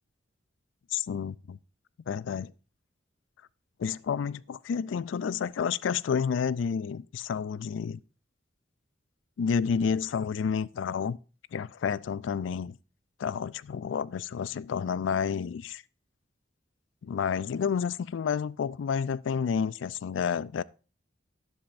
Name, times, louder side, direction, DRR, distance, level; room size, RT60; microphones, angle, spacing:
voice 1, 0.9-1.6 2.1-2.5 3.8-8.0 9.4-11.2 11.5-12.8 13.2-15.8 17.0-20.6, left 6 dB, 75° left, 0.3 m, -30 dB
11.0 x 10.5 x 2.5 m
head